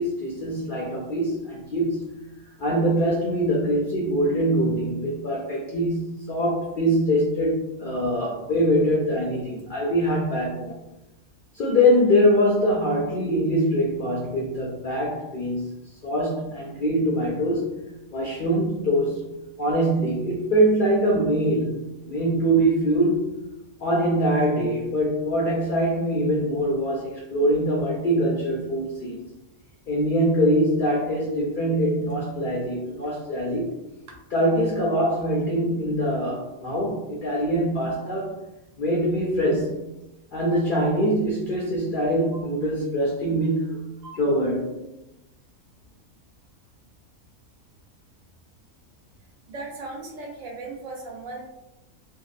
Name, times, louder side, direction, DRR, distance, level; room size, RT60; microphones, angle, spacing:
voice 1, 0.0-2.1 2.6-10.8 11.5-15.7 16.0-17.7 18.1-19.2 19.6-23.3 23.8-29.3 29.9-33.7 34.3-38.4 38.8-39.8 40.3-43.8 44.2-44.8, equal, 75° left, -4 dB, 0.4 m, -23 dB
voice 2, 49.5-51.4, right 3 dB, 70° right, 0 dB, 1.0 m, -37 dB
2.7 x 2.0 x 2.4 m, 0.93 s
omnidirectional pair, 1.5 m